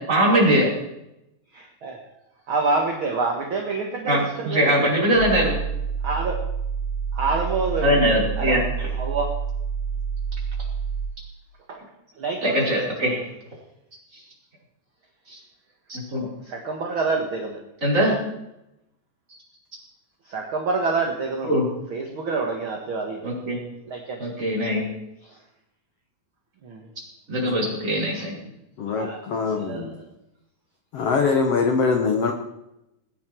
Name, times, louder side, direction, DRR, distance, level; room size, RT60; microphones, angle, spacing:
voice 1, 0.1-0.7 4.1-5.6 7.8-8.6 12.4-13.3 14.1-14.2 15.3-15.4 15.9-16.3 17.8-18.2 21.5-21.6 23.2-23.6 24.2-24.9 27.3-28.3, equal, 20° right, -5 dB, 5.4 m, -21 dB
voice 2, 1.5-2.0 2.5-5.0 6.0-6.4 7.1-8.7 9.0-9.4 11.7-11.9 12.1-12.8 16.4-17.6 20.2-21.6 21.9-23.3 23.8-24.2 25.2-25.4 26.6-26.9 28.1-28.2 28.9-29.2 29.5-30.0, right 4 dB, 50° right, 1 dB, 1.6 m, -27 dB
sound 1, 5.2-11.1, right 6 dB, 75° right, 4.5 m, -28 dB
voice 3, 28.8-30.0 30.9-32.3, left 4 dB, 70° left, 4 dB, 1.4 m, -23 dB
21.5 x 9.9 x 4.6 m, 0.87 s
omnidirectional pair, 4.6 m